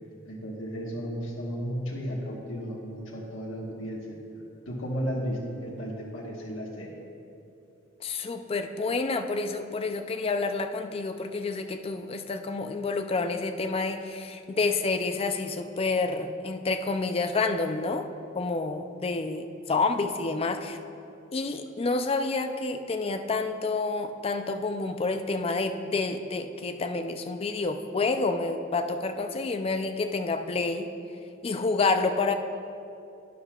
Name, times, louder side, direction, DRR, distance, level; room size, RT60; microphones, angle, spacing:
voice 1, 0.3-4.0 4.3-6.9, equal, 80° left, -3 dB, 1.2 m, -34 dB
voice 2, 8.0-18.1 18.4-20.8 21.3-30.9 31.4-32.3, left 3 dB, 30° left, 7 dB, 0.4 m, -29 dB
12.0 x 9.9 x 2.3 m, 2.6 s
head